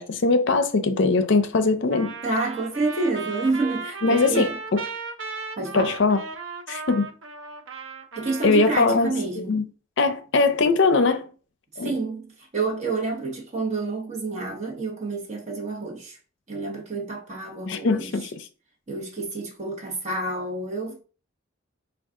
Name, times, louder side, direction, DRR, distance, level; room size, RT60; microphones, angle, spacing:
voice 1, 0.0-2.1 4.0-4.8 5.7-6.2 6.7-7.1 8.4-9.6 10.0-11.2 11.8-11.9 17.7-18.3, left 3 dB, 60° left, 0.5 m, -21 dB
Trumpet, 1.9-8.9, right 4 dB, 65° right, 0.5 m, -36 dB
voice 2, 2.2-4.6 5.6-5.9 8.2-9.6 11.8-16.2 16.5-18.1 18.9-21.0, right 3 dB, 35° right, 0.9 m, -29 dB
4.6 x 2.3 x 3.6 m
head